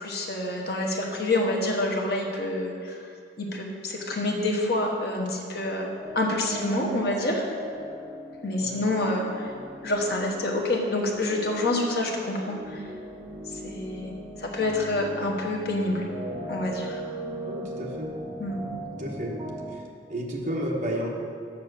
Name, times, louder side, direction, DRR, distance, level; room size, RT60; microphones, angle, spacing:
voice 1, 0.0-3.0 3.4-7.4 8.4-9.5 9.8-12.8 13.5-14.1 14.4-16.1 16.5-17.0 18.4-18.6, left 2 dB, 55° left, 0 dB, 1.2 m, -27 dB
sound 1, 6.0-19.7, right 1 dB, 20° right, 1.2 m, -39 dB
voice 2, 17.4-18.1 19.0-19.3 19.7-19.8 20.1-21.1, equal, 40° right, -2 dB, 1.2 m, -31 dB
7.3 x 5.6 x 6.6 m, 2.4 s
head